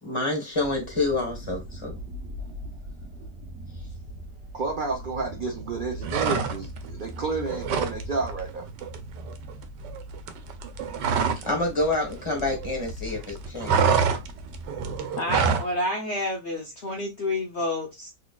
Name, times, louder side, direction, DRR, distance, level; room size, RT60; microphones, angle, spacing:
voice 1, 0.0-2.0 11.5-14.0, left 2 dB, 20° left, 1.2 m, -28 dB
sound 1, 0.5-15.0, right 1 dB, 45° right, 1.1 m, -40 dB
voice 2, 4.5-8.7, right 4 dB, 70° right, 0.4 m, -30 dB
sound 2, 6.0-6.9 7.2-8.0 8.3-8.5 8.8-11.6 11.8-12.9 13.2-15.7, right 6 dB, 90° right, 1.3 m, -26 dB
voice 3, 15.2-18.1, left 1 dB, 55° left, 0.8 m, -29 dB
3.9 x 3.1 x 2.3 m
omnidirectional pair, 1.8 m